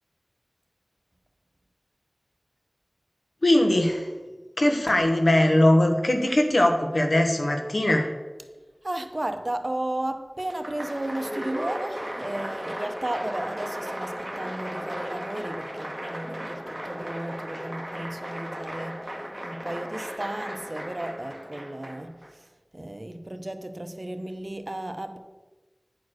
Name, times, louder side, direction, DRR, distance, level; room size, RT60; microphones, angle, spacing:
voice 1, 3.4-4.1 4.6-8.1, left 1 dB, 70° left, 4 dB, 1.2 m, -20 dB
voice 2, 8.8-19.1 19.4-25.2, right 1 dB, 40° right, 8 dB, 0.7 m, -34 dB
Applause, 10.4-22.3, equal, 15° right, 1.4 m, -36 dB
9.5 x 4.5 x 6.4 m, 1.2 s
wide cardioid pair, 55°, 0 cm